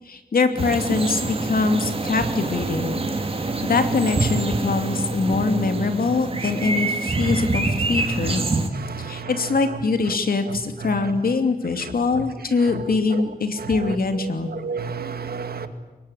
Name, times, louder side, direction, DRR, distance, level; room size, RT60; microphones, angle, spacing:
voice 1, 0.1-3.0 3.6-8.4 9.0-14.5, left 4 dB, 70° left, 7 dB, 2.8 m, -23 dB
sound 1, 0.6-8.7, right 3 dB, 35° right, 2.7 m, -26 dB
voice 2, 8.0-8.4 8.7-9.3 10.8-10.9 12.2-12.3 12.7-12.8 13.6-14.0 14.5-15.7, right 5 dB, 85° right, 9 dB, 2.1 m, -32 dB
25.5 x 22.5 x 10.0 m, 1.1 s
wide cardioid pair, 145°, 16 cm